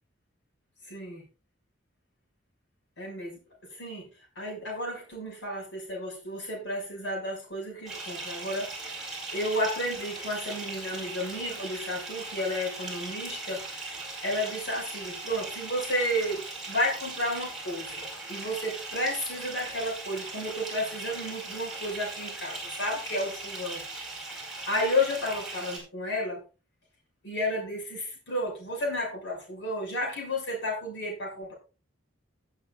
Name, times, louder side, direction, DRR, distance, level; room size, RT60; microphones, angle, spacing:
voice 1, 0.9-1.2 3.0-4.1 4.4-8.7 9.3-23.8 24.7-26.4 27.2-31.5, left 1 dB, 60° left, -1 dB, 6.2 m, -32 dB
Bathtub (filling or washing) / Fill (with liquid), 7.9-25.8, right 2 dB, ahead, 4.8 m, -39 dB
18.5 x 8.1 x 2.5 m, 0.32 s
head